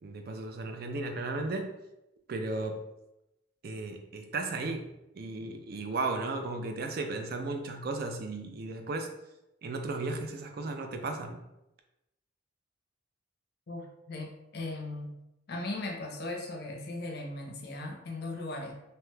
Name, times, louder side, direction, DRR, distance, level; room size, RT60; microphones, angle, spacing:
voice 1, 0.0-1.7 2.3-2.8 3.6-9.1 9.6-11.4, right 3 dB, 50° right, 5 dB, 0.3 m, -35 dB
voice 2, 13.7-15.1 15.5-18.7, left 2 dB, 55° left, 1 dB, 0.5 m, -38 dB
2.8 x 2.2 x 3.1 m, 0.91 s
head